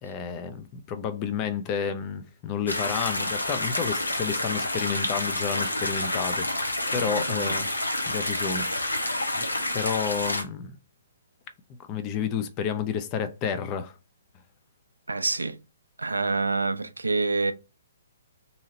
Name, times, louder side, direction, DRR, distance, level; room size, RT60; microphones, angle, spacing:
voice 1, 0.0-6.5 6.9-7.7 8.1-8.7 9.3-9.5 9.7-10.7 11.9-13.9, left 7 dB, 25° left, 0.4 m, -30 dB
sound 1, 2.7-10.4, left 1 dB, 85° left, 0.7 m, -28 dB
voice 2, 6.9-7.6 15.1-15.6 16.0-17.5, right 3 dB, 80° right, 0.4 m, -27 dB
2.8 x 2.7 x 2.7 m
figure-of-eight pair, 130°, 0 cm